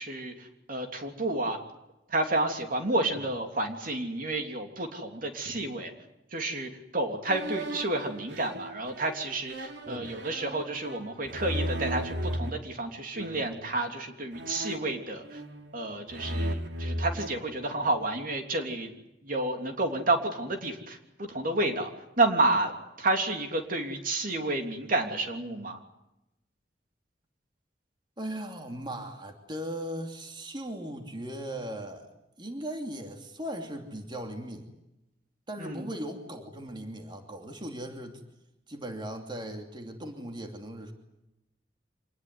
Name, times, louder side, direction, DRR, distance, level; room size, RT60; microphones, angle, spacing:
voice 1, 0.0-1.6 2.1-5.9 6.3-15.4 15.7-18.9 19.2-22.7 23.0-25.8 35.6-35.9, right 2 dB, 50° right, 4 dB, 3.1 m, -30 dB
sound 1, 7.3-12.5 13.2-13.7 14.3-15.8 16.1-18.1, right 1 dB, 80° right, 2.7 m, -36 dB
voice 2, 9.9-10.2 28.2-32.1 32.4-34.7 35.5-38.2 38.7-40.9, right 1 dB, 25° right, 4 dB, 2.8 m, -38 dB
26.0 x 20.0 x 9.6 m, 0.92 s
head